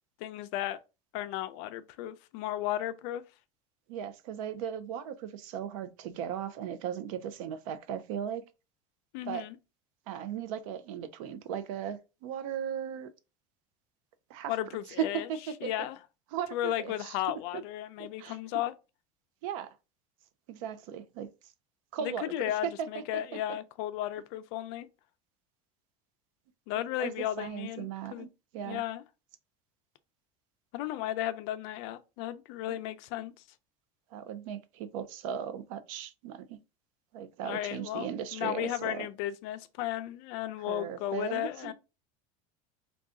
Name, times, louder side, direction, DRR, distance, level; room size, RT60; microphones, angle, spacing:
voice 1, 0.2-0.8 1.1-3.2 9.1-9.6 14.5-15.3 15.6-16.0 16.5-18.7 22.0-24.9 26.7-28.3 28.6-29.0 30.7-33.3 37.4-41.7, left 13 dB, 60° left, 0.4 m, -34 dB
voice 2, 3.9-8.4 9.3-9.5 10.1-13.1 14.3-14.6 15.0-15.7 16.3-17.2 17.5-17.6 18.0-18.4 19.4-19.8 20.5-21.3 21.9-23.2 27.0-28.3 28.5-28.8 32.7-32.8 34.1-36.6 37.1-39.1 40.6-41.7, right 8 dB, 80° right, 0.6 m, -37 dB
3.8 x 2.3 x 3.6 m
cardioid pair, 165°, 17 cm